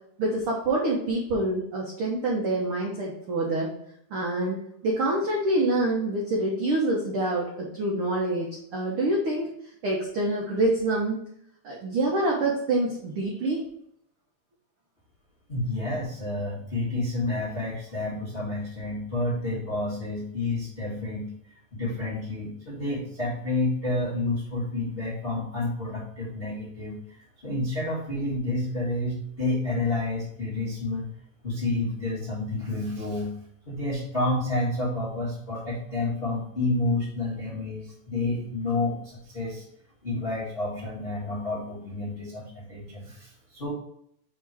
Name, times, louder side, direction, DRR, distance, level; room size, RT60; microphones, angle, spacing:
voice 1, 0.2-3.7 4.1-9.5 9.8-11.2 11.6-13.6, right 2 dB, 75° right, -2 dB, 1.2 m, -26 dB
voice 2, 15.5-21.3 21.7-26.9 27.4-31.0 31.4-33.3 33.6-39.6 40.0-43.7, left 2 dB, 40° left, -7 dB, 0.8 m, -29 dB
5.8 x 3.8 x 4.5 m, 0.70 s
omnidirectional pair, 3.8 m